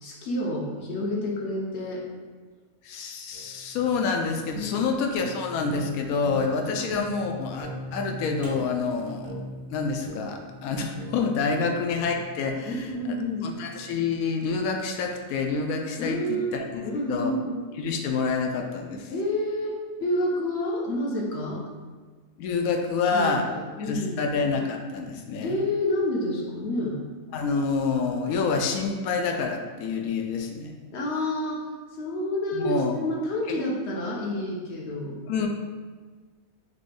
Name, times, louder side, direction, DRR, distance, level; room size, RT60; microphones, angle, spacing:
voice 1, 0.0-2.0 4.5-4.9 6.7-6.9 11.5-11.7 12.6-13.5 16.0-16.5 16.8-17.6 19.1-21.6 23.1-24.3 25.4-27.0 30.9-31.6 31.9-35.2, left 1 dB, 55° left, -2 dB, 1.0 m, -29 dB
voice 2, 2.8-9.4 9.7-12.7 13.4-17.3 17.8-19.1 22.4-23.5 23.9-25.6 27.3-30.7 32.5-33.0 33.5-33.6 35.3-35.5, left 4 dB, 85° left, 4 dB, 1.0 m, -27 dB
sound 1, 3.3-14.5, right 1 dB, 10° right, 0.4 m, -41 dB
4.1 x 3.2 x 3.3 m, 1.4 s
omnidirectional pair, 1.5 m